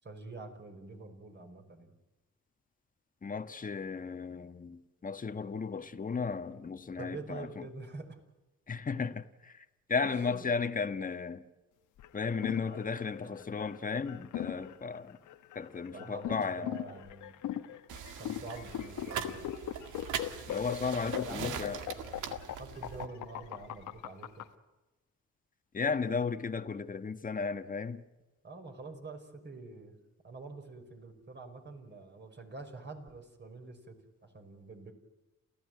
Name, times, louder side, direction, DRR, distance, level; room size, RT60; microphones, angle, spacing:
voice 1, 0.0-1.9 7.0-8.2 10.0-10.4 12.6-13.5 15.9-17.4 18.2-19.5 21.3-22.2 22.5-24.4 28.4-30.0 30.2-34.9, right 3 dB, 35° right, 5.5 m, -46 dB
voice 2, 3.2-7.7 8.7-11.4 12.1-15.2 15.5-16.7 20.5-21.8 25.7-28.0, left 5 dB, 25° left, 1.4 m, -35 dB
sound 1, 12.0-24.4, left 12 dB, 85° left, 1.6 m, -39 dB
sound 2, 17.9-23.1, right 8 dB, 85° right, 2.0 m, -41 dB
28.5 x 15.0 x 9.4 m
cardioid pair, 90°, 30 cm